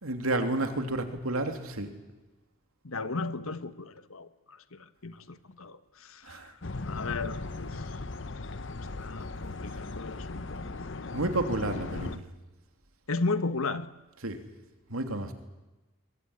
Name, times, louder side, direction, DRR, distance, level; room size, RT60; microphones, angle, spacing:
voice 1, 0.0-1.9 6.2-6.5 11.1-12.2 14.2-14.4 14.9-15.3, right 2 dB, 90° right, 3.0 m, -31 dB
voice 2, 2.8-6.4 6.8-8.0 9.0-10.6 13.1-13.9, left 3 dB, 80° left, 1.4 m, -35 dB
sound 1, 6.6-12.2, left 3 dB, 60° left, 1.0 m, -38 dB
22.5 x 22.5 x 9.9 m
head